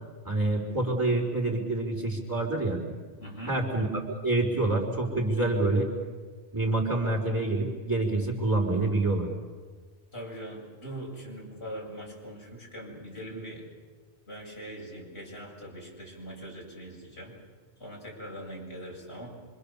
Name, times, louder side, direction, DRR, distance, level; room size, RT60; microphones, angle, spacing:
voice 1, 0.2-2.8 3.5-5.9 6.5-9.3, right 2 dB, 20° right, -1 dB, 4.5 m, -27 dB
voice 2, 3.2-3.6 10.1-13.6 14.3-17.3 17.8-19.4, right 1 dB, 75° left, -2 dB, 7.5 m, -41 dB
26.5 x 26.0 x 7.0 m, 1.4 s
omnidirectional pair, 1.1 m